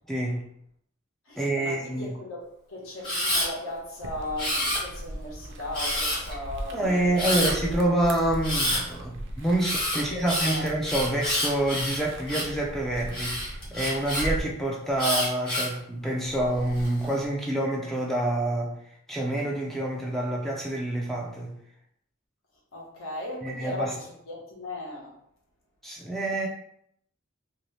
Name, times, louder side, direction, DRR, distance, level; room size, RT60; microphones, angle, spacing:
voice 1, 0.1-0.5 1.4-2.1 6.7-18.8 19.1-21.5 23.4-23.9 25.8-26.5, right 1 dB, ahead, -2 dB, 0.3 m, -27 dB
voice 2, 1.3-7.8 10.0-10.7 22.7-25.1, left 1 dB, 70° left, -2 dB, 1.0 m, -37 dB
Camera, 3.0-3.5 4.4-5.1 5.7-6.3 7.2-7.5 8.4-8.8 9.6-12.6 13.1-14.2 15.0-15.8 16.4-16.9, left 1 dB, 25° left, 1.1 m, -28 dB
sound 1, 4.0-14.4, right 1 dB, 60° right, 0.4 m, -39 dB
2.8 x 2.6 x 3.2 m, 0.72 s
head